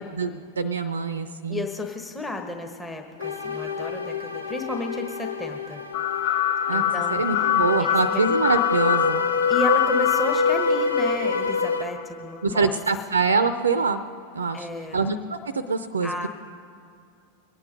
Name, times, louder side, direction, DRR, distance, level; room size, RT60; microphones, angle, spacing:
voice 1, 0.1-1.7 6.7-9.2 12.4-14.0 14.3-14.7 14.9-16.3, right 4 dB, 75° right, 12 dB, 0.5 m, -25 dB
voice 2, 1.5-5.8 6.7-7.5 7.8-8.2 9.5-12.8 14.5-15.0 16.0-16.3, left 2 dB, 10° left, 2 dB, 1.2 m, -32 dB
sound 1, 3.2-11.9, left 3 dB, 85° left, 1.0 m, -27 dB
sound 2, 5.9-12.0, left 11 dB, 50° left, 0.4 m, -25 dB
23.0 x 9.1 x 5.2 m, 2.5 s
figure-of-eight pair, 90°, 0 cm